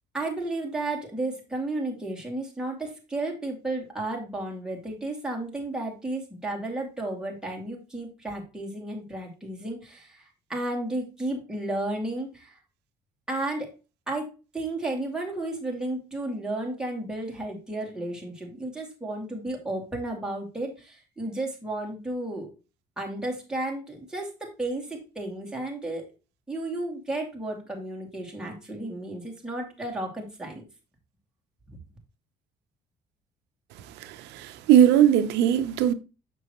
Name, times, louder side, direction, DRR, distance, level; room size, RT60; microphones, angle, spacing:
voice 1, 0.1-12.6 13.3-13.7 14.1-22.5 23.0-26.1 26.5-30.6 31.7-31.8, right 2 dB, 5° right, 2.3 m, -33 dB
voice 2, 34.0-35.9, right 10 dB, 90° right, 0.7 m, -20 dB
6.8 x 6.2 x 3.0 m
cardioid pair, 110°, 17 cm